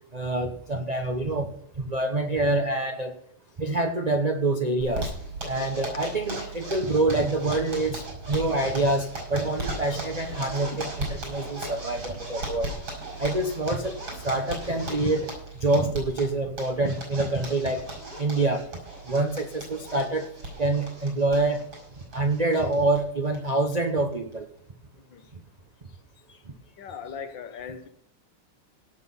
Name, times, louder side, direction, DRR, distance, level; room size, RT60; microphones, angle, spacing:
voice 1, 0.1-1.5 1.8-3.1 3.6-5.1 5.5-8.0 8.3-12.7 13.2-13.9 14.2-15.3 15.6-17.9 18.2-18.7 19.1-20.3 20.6-21.6 22.1-24.5, right 2 dB, 45° right, 3 dB, 0.5 m, -26 dB
Zipper (clothing), 4.8-23.0 23.3-23.4 23.7-23.8 24.1-24.6, right 2 dB, 70° right, 6.3 m, -37 dB
voice 2, 10.4-10.8 16.7-16.9 25.1-25.2 26.8-27.9, left 6 dB, 65° left, 9 dB, 1.6 m, -40 dB
17.5 x 6.2 x 5.5 m, 0.70 s
omnidirectional pair, 2.4 m